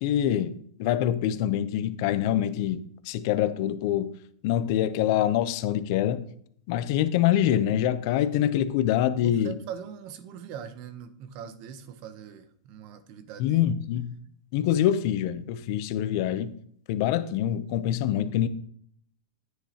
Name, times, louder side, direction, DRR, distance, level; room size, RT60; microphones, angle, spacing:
voice 1, 0.0-4.1 4.4-6.2 6.7-9.5 13.4-14.2 14.5-16.5 16.9-18.5, left 11 dB, 55° left, 11 dB, 0.7 m, -25 dB
voice 2, 9.1-13.6, right 8 dB, 45° right, 12 dB, 0.8 m, -41 dB
9.9 x 7.7 x 2.9 m, 0.64 s
supercardioid pair, 140°, 3 cm